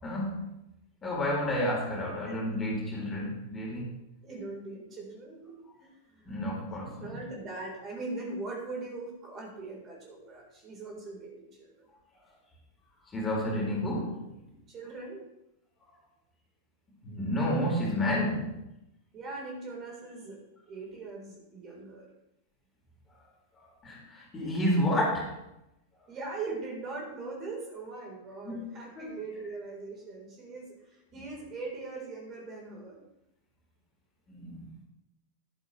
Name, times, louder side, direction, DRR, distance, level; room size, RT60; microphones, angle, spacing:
voice 1, 0.0-0.5 1.0-3.9 6.3-7.2 13.1-14.3 17.0-18.6 23.6-25.4 28.4-28.7 29.0-29.1 34.3-34.8, left 1 dB, 20° left, -3 dB, 4.0 m, -31 dB
voice 2, 4.2-6.4 7.0-11.7 14.7-15.2 19.1-20.4 20.7-22.1 26.1-33.1, right 3 dB, 30° right, -1 dB, 4.0 m, -41 dB
12.0 x 11.0 x 3.3 m, 0.87 s
figure-of-eight pair, 90°, 0 cm